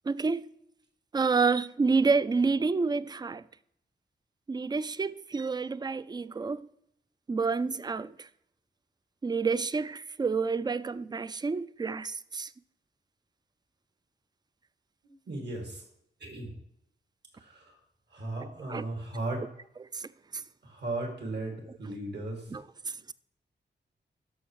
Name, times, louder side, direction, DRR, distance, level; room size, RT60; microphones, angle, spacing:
voice 1, 0.1-0.5 1.1-3.4 4.5-6.6 7.3-8.1 9.2-12.5 18.7-18.8 19.9-20.0 22.5-22.6, right 4 dB, 25° right, 0.3 m, -28 dB
voice 2, 15.0-15.8 16.2-16.5 17.3-17.8 18.1-19.5 20.6-22.6, right 2 dB, 70° right, 2.3 m, -36 dB
13.0 x 5.8 x 3.1 m
wide cardioid pair, 110°, 18 cm